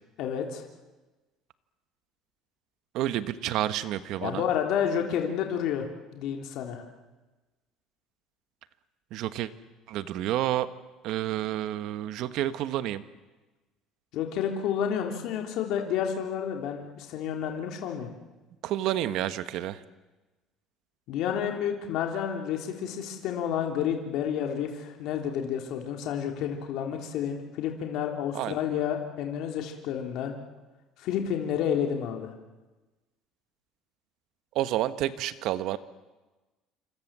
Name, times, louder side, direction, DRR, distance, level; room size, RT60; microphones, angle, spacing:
voice 1, 0.2-0.6 4.2-6.8 14.1-18.1 21.1-30.3 31.0-32.3, left 8 dB, 60° left, 3 dB, 3.3 m, -30 dB
voice 2, 2.9-4.4 9.1-9.5 9.9-10.7 11.0-13.0 18.6-19.8 28.3-28.6 34.5-35.8, right 13 dB, 60° right, 12 dB, 1.3 m, -29 dB
27.5 x 26.0 x 7.5 m, 1.2 s
cardioid pair, 155°, 0 cm